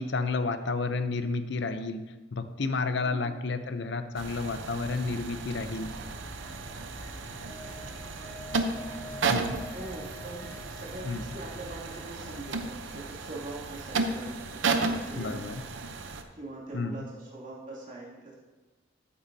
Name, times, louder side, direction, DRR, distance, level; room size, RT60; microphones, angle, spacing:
voice 1, 0.0-2.0 2.3-5.9 9.3-9.6 11.1-11.2 15.2-15.6 16.7-17.0, left 3 dB, 55° left, 10 dB, 0.6 m, -31 dB
sound 1, 4.2-16.2, right 4 dB, 65° right, 0.7 m, -34 dB
sound 2, 5.7-12.6, left 1 dB, 10° left, 0.5 m, -47 dB
sound 3, 7.0-7.4 7.7-8.1 8.4-8.8 9.1-10.2 10.5-10.6 10.9-12.6, equal, 30° left, 2.2 m, -52 dB
voice 2, 9.6-15.6 16.3-18.3, right 2 dB, 40° right, -6 dB, 2.6 m, -43 dB
13.5 x 8.5 x 2.8 m, 1.2 s
head